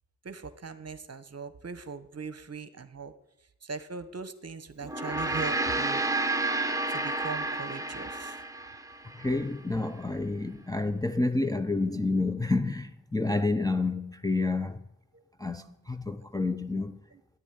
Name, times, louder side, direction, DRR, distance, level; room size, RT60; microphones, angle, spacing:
voice 1, 0.2-3.1 3.6-6.0 6.9-8.4 13.9-14.0 15.1-15.2 17.1-17.2, right 5 dB, 40° right, 1.1 m, -40 dB
Gong, 4.8-9.4, right 2 dB, 10° right, 1.2 m, -31 dB
voice 2, 9.1-14.8 15.4-16.9, left 2 dB, 10° left, 0.6 m, -29 dB
10.0 x 9.6 x 9.3 m
cardioid pair, 60°, 40 cm